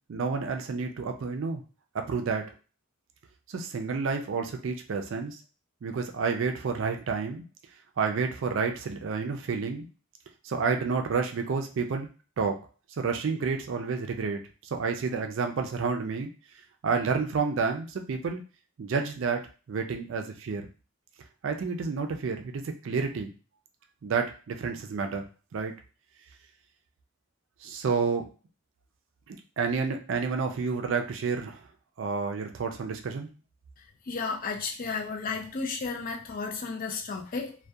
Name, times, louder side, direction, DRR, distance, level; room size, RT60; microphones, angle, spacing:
voice 1, 0.1-1.6 1.9-2.5 3.5-5.4 5.8-7.4 8.0-9.9 10.4-12.1 12.4-12.6 13.0-16.3 16.8-18.4 18.8-20.7 21.4-23.3 24.0-25.2 25.5-25.7 27.6-28.2 29.3-31.6 32.0-33.3, right 5 dB, 65° right, 0.4 m, -30 dB
voice 2, 34.1-37.6, left 4 dB, 40° left, 0.4 m, -33 dB
2.6 x 2.2 x 2.3 m
head